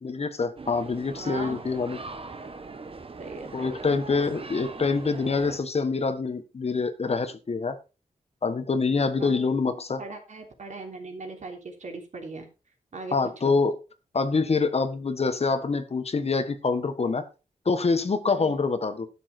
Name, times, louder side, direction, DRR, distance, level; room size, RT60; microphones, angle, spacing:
voice 1, 0.0-2.0 3.5-7.8 8.4-10.0 13.1-13.7 14.1-17.2 17.6-19.1, left 4 dB, 50° left, 10 dB, 1.4 m, -25 dB
sound 1, 0.6-5.6, right 3 dB, 45° right, 1.4 m, -41 dB
voice 2, 1.1-1.6 3.2-4.0 9.2-9.4 10.0-12.5 12.9-13.2 13.4-13.5 18.4-18.6, right 3 dB, 65° right, 2 dB, 3.4 m, -39 dB
12.0 x 7.5 x 4.4 m, 0.31 s
wide cardioid pair, 120°, 14 cm